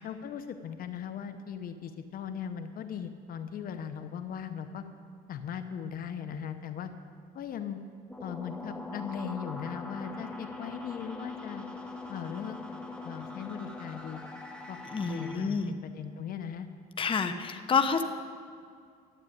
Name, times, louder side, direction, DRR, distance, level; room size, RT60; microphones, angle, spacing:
voice 1, 0.0-4.8 5.3-6.9 7.3-7.8 8.2-11.6 12.1-12.6 13.0-14.2 14.7-16.7, left 8 dB, 60° left, 9 dB, 0.9 m, -38 dB
sound 1, 8.1-15.4, left 3 dB, 5° left, 1.7 m, -42 dB
voice 2, 14.9-15.7 17.0-18.0, left 5 dB, 30° left, 7 dB, 0.9 m, -28 dB
12.5 x 8.9 x 9.3 m, 2.2 s
cardioid pair, 110°, 17 cm